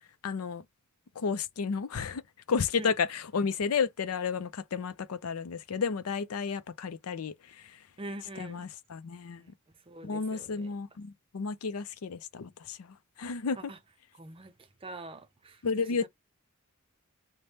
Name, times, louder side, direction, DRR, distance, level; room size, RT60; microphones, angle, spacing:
voice 1, 0.2-0.6 1.2-2.2 2.5-7.3 8.4-9.4 10.0-12.8 13.2-13.6 15.6-16.1, left 5 dB, 85° left, 0.5 m, -32 dB
voice 2, 8.0-8.7 9.4-9.5 9.9-10.7 13.6-13.8 14.1-14.6 14.8-16.1, right 2 dB, 25° right, 0.5 m, -44 dB
3.3 x 2.1 x 4.1 m
head